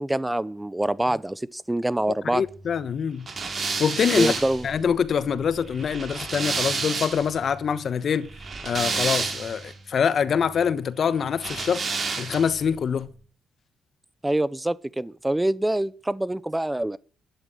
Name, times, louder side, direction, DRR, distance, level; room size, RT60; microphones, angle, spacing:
voice 1, 0.0-2.4 4.1-4.7 14.2-17.0, right 1 dB, 10° right, 0.7 m, -25 dB
voice 2, 2.3-3.3 3.8-4.3 4.6-8.3 8.6-11.8 12.2-13.1, left 7 dB, 60° left, 1.2 m, -25 dB
sound 1, 3.3-7.4 8.3-9.7 11.4-12.6, right 4 dB, 45° right, 4.5 m, -30 dB
11.5 x 11.5 x 7.8 m
cardioid pair, 75°, 0 cm